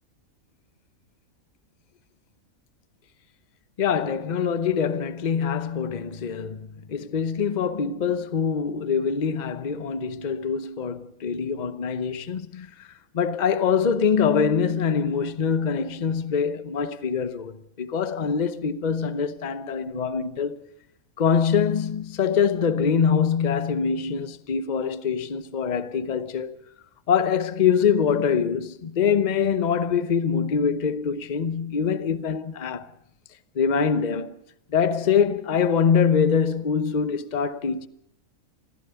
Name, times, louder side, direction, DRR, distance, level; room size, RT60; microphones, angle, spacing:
voice 1, 3.8-12.9 13.1-20.6 21.2-26.6 27.1-32.9 33.5-34.3 34.7-37.9, left 6 dB, 35° left, 0.9 m, -24 dB
25.0 x 15.5 x 7.0 m
omnidirectional pair, 1.5 m